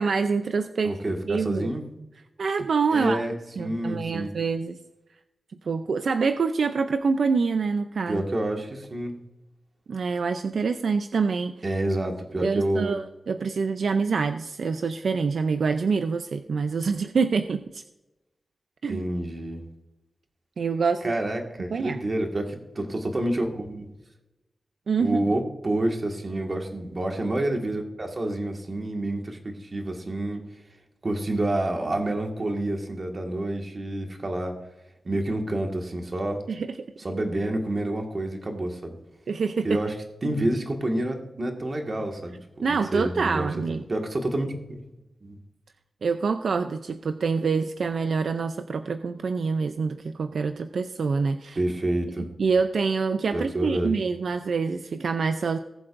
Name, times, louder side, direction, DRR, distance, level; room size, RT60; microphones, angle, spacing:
voice 1, 0.0-0.9 1.3-1.7 2.4-3.2 3.6-4.8 5.6-8.2 9.9-11.5 12.4-17.8 18.8-19.0 20.6-21.2 21.7-22.0 24.9-25.2 36.5-36.8 39.3-39.8 42.6-43.8 46.0-51.6 52.2-55.6, right 5 dB, 70° right, 8 dB, 0.5 m, -26 dB
voice 2, 0.8-1.8 2.9-4.3 8.1-9.1 11.6-12.9 18.9-19.6 21.0-23.9 25.0-30.4 31.0-34.6 35.0-36.4 37.0-38.9 39.6-39.9 40.2-43.5 43.9-44.8 45.2-45.4 51.5-52.3 53.3-54.0, right 1 dB, 35° right, 2 dB, 1.7 m, -28 dB
19.5 x 7.7 x 2.6 m, 0.96 s
wide cardioid pair, 155°, 0 cm